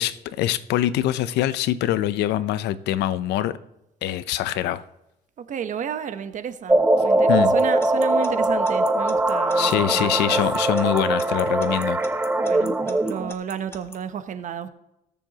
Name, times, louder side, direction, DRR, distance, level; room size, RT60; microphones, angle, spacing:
voice 1, 0.0-3.6 4.0-4.8 7.3-7.5 9.6-12.0, left 13 dB, 80° left, 0.6 m, -24 dB
voice 2, 5.4-10.4 12.4-14.7, right 8 dB, 50° right, 0.9 m, -32 dB
sound 1, 6.7-13.3, right 2 dB, 10° right, 0.6 m, -21 dB
Alarm / Clock, 7.6-14.0, left 2 dB, 15° left, 1.2 m, -42 dB
20.5 x 7.0 x 2.9 m
cardioid pair, 110°, 17 cm